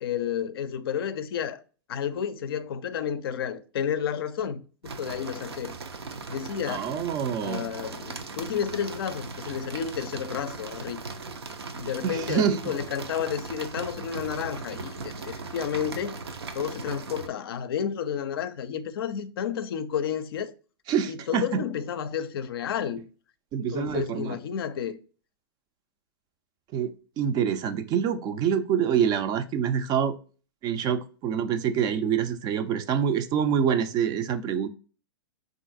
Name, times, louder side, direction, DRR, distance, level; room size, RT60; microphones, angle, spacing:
voice 1, 0.0-1.6 1.9-5.7 6.3-6.9 7.4-11.0 11.7-16.2 16.5-20.5 21.1-23.1 23.6-25.0, left 8 dB, 70° left, 0.4 m, -31 dB
sound 1, 4.8-17.3, right 4 dB, 85° right, 0.5 m, -38 dB
voice 2, 6.7-7.7 12.0-12.6 20.9-21.6 23.5-24.4 26.7-26.9 27.2-30.2 30.6-34.7, right 8 dB, 30° right, 0.3 m, -26 dB
3.7 x 2.5 x 2.5 m
hypercardioid pair, 105°, 13 cm